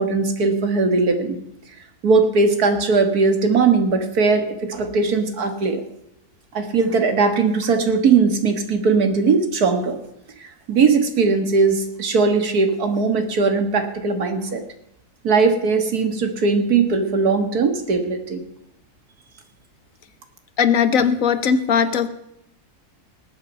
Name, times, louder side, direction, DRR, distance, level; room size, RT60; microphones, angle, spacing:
voice 1, 0.0-1.4 2.0-5.8 6.5-10.0 10.4-14.6 15.2-18.4, right 4 dB, 80° right, 7 dB, 2.2 m, -19 dB
voice 2, 20.6-22.1, left 7 dB, 65° left, 12 dB, 1.3 m, -18 dB
19.0 x 8.9 x 5.4 m, 0.81 s
omnidirectional pair, 1.6 m